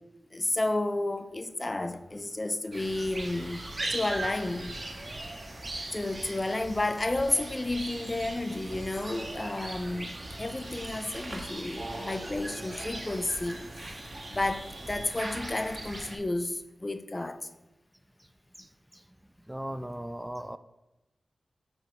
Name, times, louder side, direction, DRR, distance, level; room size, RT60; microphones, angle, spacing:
voice 1, 0.3-4.7 5.9-13.9 14.3-17.4, left 2 dB, 35° left, 0.6 m, -31 dB
sound 1, 2.7-16.2, right 1 dB, 45° right, 1.5 m, -39 dB
voice 2, 18.6-20.6, right 1 dB, 15° right, 0.4 m, -39 dB
6.0 x 5.3 x 5.7 m
cardioid pair, 40°, 0 cm